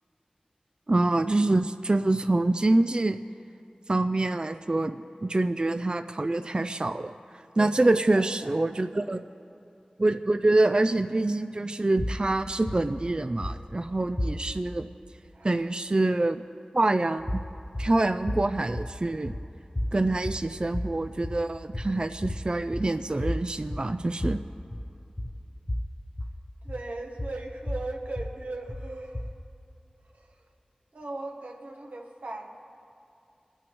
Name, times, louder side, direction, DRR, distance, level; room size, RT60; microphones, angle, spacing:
voice 1, 0.9-3.2 3.9-7.1 7.6-9.2 10.0-14.9 15.4-16.4 16.7-17.4 17.8-19.3 19.9-24.4, right 2 dB, 35° right, 9 dB, 0.3 m, -25 dB
voice 2, 7.5-8.7 9.1-9.3 15.3-15.7 26.6-29.3 30.0-30.5 30.9-32.5, right 2 dB, 90° right, 1 dB, 1.1 m, -39 dB
sound 1, 12.0-14.8 17.2-29.5, left 1 dB, 25° left, 0.6 m, -35 dB
27.0 x 8.9 x 3.0 m, 2.7 s
wide cardioid pair, 45°, 3 cm